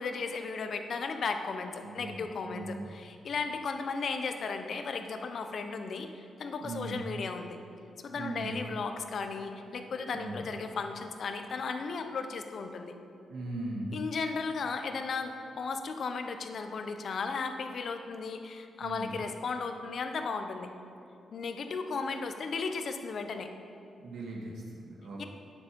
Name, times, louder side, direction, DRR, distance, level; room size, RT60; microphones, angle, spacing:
voice 1, 0.0-7.6 8.0-12.9 13.9-20.7 21.3-23.5 25.2-25.3, left 4 dB, 55° left, 6 dB, 0.8 m, -35 dB
voice 2, 1.8-2.8 6.6-7.0 8.1-8.6 10.1-10.4 13.3-14.0 18.8-19.2 24.0-25.3, right 2 dB, 75° right, -2 dB, 2.1 m, -39 dB
9.5 x 8.2 x 5.2 m, 2.6 s
wide cardioid pair, 140°, 0 cm